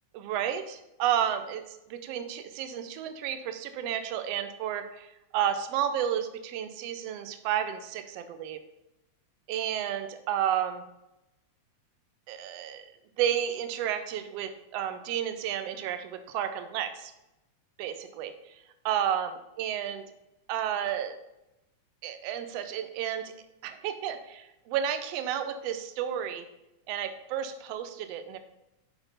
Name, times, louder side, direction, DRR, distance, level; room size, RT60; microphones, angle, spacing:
voice 1, 0.1-8.6 9.5-10.8 12.3-12.8 13.2-17.1 17.8-18.3 18.8-20.0 20.5-21.2 22.0-23.3 23.6-26.4 26.9-28.4, right 10 dB, 80° right, 9 dB, 1.5 m, -31 dB
8.1 x 5.4 x 4.0 m, 0.90 s
omnidirectional pair, 3.5 m